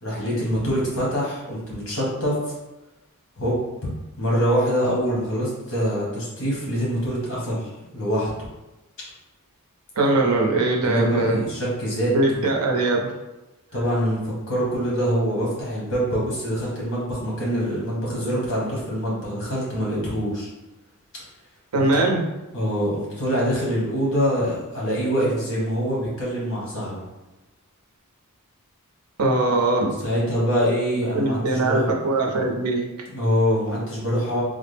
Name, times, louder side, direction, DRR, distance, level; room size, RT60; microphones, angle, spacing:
voice 1, 0.0-2.5 3.4-3.6 4.2-8.3 10.8-12.4 13.7-20.5 21.8-21.9 22.5-27.1 29.8-31.9 33.1-34.4, equal, 60° left, -5 dB, 1.3 m, -24 dB
voice 2, 10.0-11.4 12.1-13.1 21.7-22.2 29.2-29.9 31.1-32.8, right 2 dB, 80° right, 0 dB, 0.6 m, -21 dB
3.5 x 2.0 x 3.3 m, 1.1 s
head